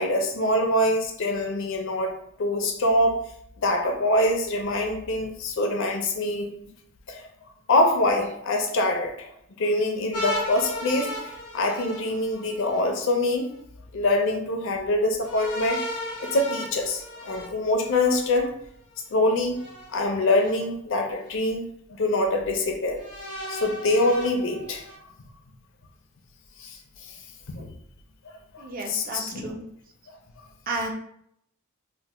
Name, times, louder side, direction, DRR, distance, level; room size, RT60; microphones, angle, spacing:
voice 1, 0.0-2.1 2.4-3.2 3.6-6.5 7.1-7.3 7.7-9.3 9.6-13.5 13.9-15.8 16.2-18.5 19.1-19.6 19.9-23.0 23.5-24.8 26.6-27.2 27.5-27.7 28.5-29.5, left 1 dB, 55° left, 3 dB, 0.5 m, -24 dB
sound 1, 10.1-12.8 15.2-18.3 19.5-20.5 21.2-21.3 23.0-25.0, left 1 dB, 85° left, 0.8 m, -35 dB
voice 2, 28.6-29.7 30.7-30.9, right 2 dB, 40° right, 2 dB, 0.4 m, -32 dB
3.2 x 2.1 x 2.9 m, 0.72 s
head